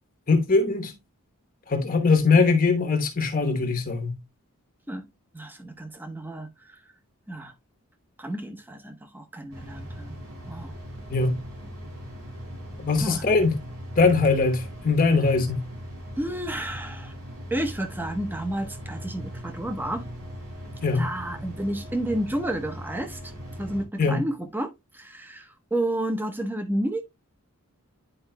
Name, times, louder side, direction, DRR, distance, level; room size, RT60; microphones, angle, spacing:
voice 1, 0.3-0.9 1.7-4.2 11.1-11.4 12.8-13.6 14.0-15.7 20.8-21.1 24.0-24.2, left 4 dB, 40° left, 1.1 m, -21 dB
voice 2, 5.3-6.8 7.3-7.5 8.2-10.2 10.5-10.7 13.0-13.2 16.2-17.1 17.5-20.0 20.9-23.3 23.6-27.0, right 1 dB, 10° right, 0.9 m, -31 dB
sound 1, 9.5-23.8, equal, 85° right, 3.6 m, -39 dB
10.0 x 4.7 x 2.2 m
head